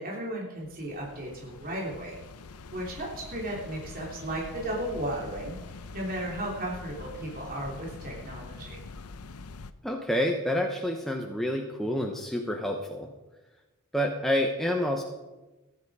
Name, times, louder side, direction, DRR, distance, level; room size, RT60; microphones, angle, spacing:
voice 1, 0.0-2.1 2.7-5.6 5.9-8.8, right 1 dB, 40° right, -3 dB, 3.3 m, -35 dB
sound 1, 0.6-9.7, left 3 dB, 85° left, 0.7 m, -44 dB
voice 2, 9.8-13.1 13.9-15.0, equal, ahead, 1 dB, 1.0 m, -28 dB
15.5 x 11.0 x 4.9 m, 1.1 s
head